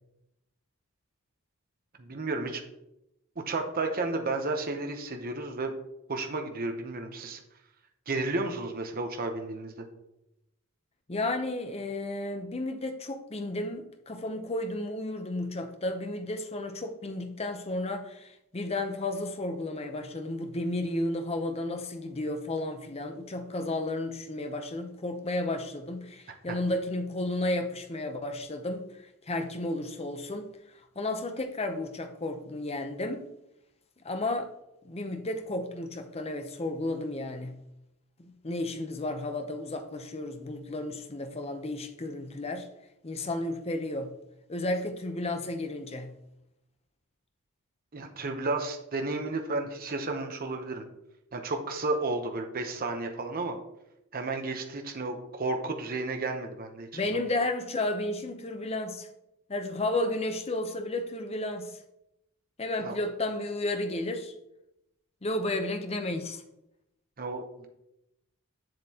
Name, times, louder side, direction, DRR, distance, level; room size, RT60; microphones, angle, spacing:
voice 1, 2.0-2.6 3.5-5.7 6.1-7.4 8.1-9.8 26.5-26.6 47.9-50.8 51.3-53.6 54.1-56.9 62.8-63.0 67.2-67.7, right 3 dB, 40° right, 0.8 m, -32 dB
voice 2, 11.1-28.8 29.3-30.5 31.0-33.2 34.0-34.5 34.8-37.6 38.2-42.7 43.0-44.1 44.5-46.1 56.9-59.1 59.5-61.8 62.6-64.3 65.2-66.4, left 2 dB, 30° left, 0.7 m, -32 dB
7.6 x 7.4 x 2.8 m
head